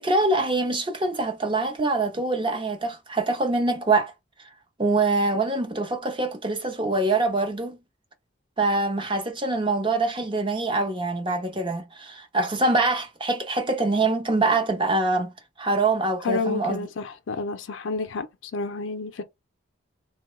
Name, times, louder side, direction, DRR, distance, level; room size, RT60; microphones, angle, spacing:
voice 1, 0.0-4.1 4.8-7.8 8.6-15.3 15.6-16.8, right 2 dB, 25° right, 0.6 m, -24 dB
voice 2, 16.2-19.2, left 4 dB, 75° left, 0.4 m, -30 dB
3.7 x 2.2 x 3.0 m
head